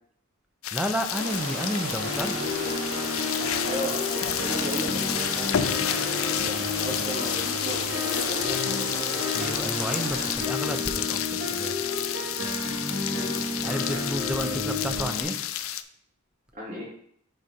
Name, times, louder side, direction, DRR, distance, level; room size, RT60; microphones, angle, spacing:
sound 1, 0.6-15.8, left 11 dB, 75° left, 0.4 m, -30 dB
voice 1, 0.7-2.6 9.3-11.8 13.6-15.4, equal, 5° right, 5 dB, 0.6 m, -31 dB
sound 2, 1.1-10.4, right 2 dB, 65° right, 1.1 m, -35 dB
sound 3, 2.0-15.2, left 2 dB, 90° right, 3.0 m, -32 dB
voice 2, 3.6-9.3 13.1-13.4 13.8-14.0 14.4-14.7 16.5-16.8, equal, 40° right, -4 dB, 2.6 m, -36 dB
6.5 x 5.0 x 4.4 m, 0.66 s
head